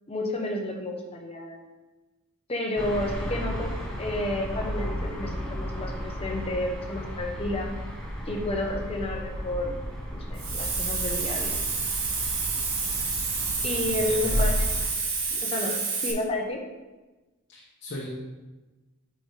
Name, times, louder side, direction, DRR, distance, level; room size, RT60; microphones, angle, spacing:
voice 1, 0.1-1.6 2.5-3.7 4.0-7.7 8.3-9.7 10.1-11.6 13.6-14.8 15.3-16.6, left 1 dB, 25° left, 1 dB, 0.9 m, -31 dB
sound 1, 2.8-14.9, equal, 5° left, 1.0 m, -33 dB
Hiss, 10.4-16.1, right 4 dB, 75° right, 1.4 m, -29 dB
voice 2, 13.9-14.3 17.5-18.1, left 1 dB, 55° left, -5 dB, 0.9 m, -38 dB
8.5 x 5.0 x 3.3 m, 1.2 s
head